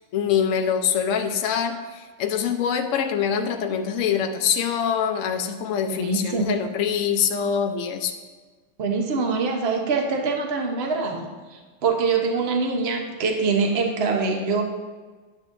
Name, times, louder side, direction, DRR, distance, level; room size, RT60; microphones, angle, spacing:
voice 1, 0.1-8.1, left 7 dB, 75° left, 5 dB, 0.7 m, -24 dB
voice 2, 5.9-6.5 8.8-14.6, right 4 dB, 40° right, 2 dB, 0.9 m, -24 dB
11.0 x 9.3 x 2.7 m, 1.4 s
omnidirectional pair, 2.3 m